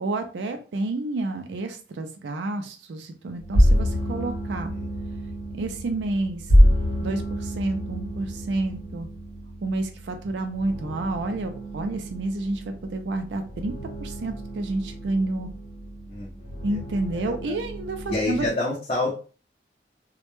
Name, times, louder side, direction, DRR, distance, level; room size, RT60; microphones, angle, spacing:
voice 1, 0.0-4.7 5.5-6.7 7.0-9.1 9.6-13.7 14.0-15.5 16.6-18.4, right 2 dB, 85° right, 6 dB, 0.4 m, -29 dB
sound 1, 3.4-18.5, equal, 85° left, 0.9 m, -27 dB
voice 2, 16.1-16.8 17.2-17.6 18.1-19.1, left 2 dB, 35° left, -4 dB, 0.5 m, -28 dB
2.1 x 2.1 x 3.0 m, 0.36 s
head